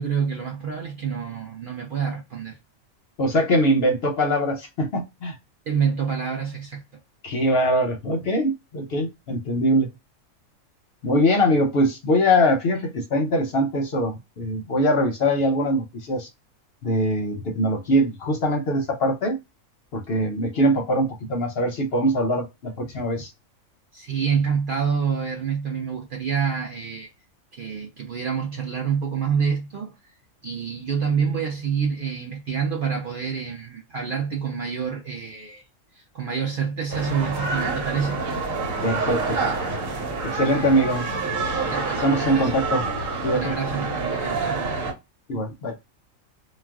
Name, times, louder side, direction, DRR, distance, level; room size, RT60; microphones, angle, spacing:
voice 1, 0.0-2.6 5.7-6.8 23.9-27.1 27.5-29.9 30.4-35.6 35.9-38.2 41.7-42.5 43.3-44.8, right 6 dB, 60° right, 0.6 m, -27 dB
voice 2, 3.2-5.4 7.2-9.9 11.0-16.3 16.8-19.4 19.9-23.3 38.8-39.4 40.2-41.0 42.0-42.9 43.2-43.5 45.3-45.7, equal, 60° left, 0.7 m, -22 dB
sound 1, 36.9-44.9, right 3 dB, 80° right, 1.1 m, -27 dB
2.4 x 2.1 x 3.4 m
omnidirectional pair, 1.4 m